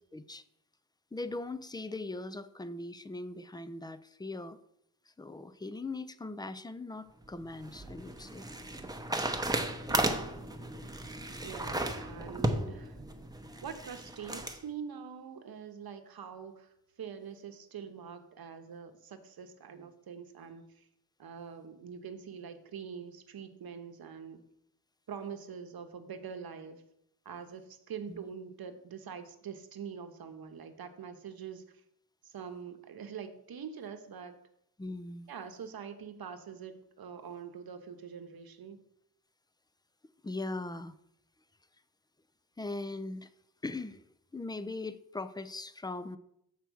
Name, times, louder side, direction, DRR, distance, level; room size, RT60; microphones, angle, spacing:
voice 1, 0.1-0.4 1.1-4.6 5.2-8.5 28.1-28.2 34.8-35.3 40.2-40.9 42.6-43.3 43.6-44.1 44.3-46.2, left 2 dB, 10° left, 14 dB, 0.4 m, -40 dB
sound 1, 7.2-14.6, right 1 dB, 10° right, 0.8 m, -35 dB
voice 2, 9.9-10.5 11.4-13.0 13.6-20.9 21.2-24.4 25.1-26.8 27.2-31.6 32.2-34.4 35.3-38.8, right 7 dB, 65° right, 8 dB, 1.0 m, -44 dB
6.9 x 4.5 x 6.2 m, 0.76 s
cardioid pair, 80°, 38 cm